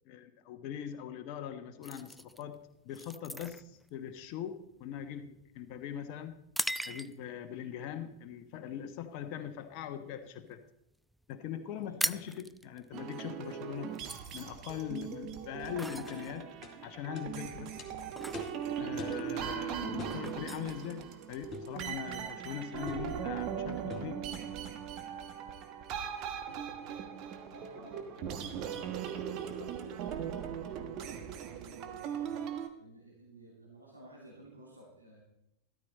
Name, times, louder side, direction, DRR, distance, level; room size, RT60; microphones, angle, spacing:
voice 1, 0.0-2.6 2.8-6.3 6.9-10.6 11.3-14.0 14.3-16.5 16.8-17.8 18.8-24.2, left 9 dB, 45° left, 7 dB, 1.1 m, -41 dB
sound 1, 1.8-7.4 8.0-8.2 8.7-9.0 9.4-10.5 10.8-10.9 11.1-11.3 11.6-21.6, right 1 dB, ahead, 0.3 m, -41 dB
sound 2, 12.9-32.7, right 8 dB, 40° right, 1.3 m, -39 dB
sound 3, 15.6-15.7 16.1-16.2 16.6-16.8 17.2-17.3 17.8-17.9 18.3-18.6 19.0-19.2 20.0-20.2 21.5-21.7 22.9-23.1 23.9-24.1, left 6 dB, 25° left, 2.1 m, -45 dB
voice 2, 18.6-19.0 26.3-27.1 27.5-32.4 32.8-35.2, right 1 dB, 80° right, -3 dB, 2.9 m, -54 dB
13.0 x 13.0 x 4.2 m, 0.82 s
figure-of-eight pair, 90°, 0 cm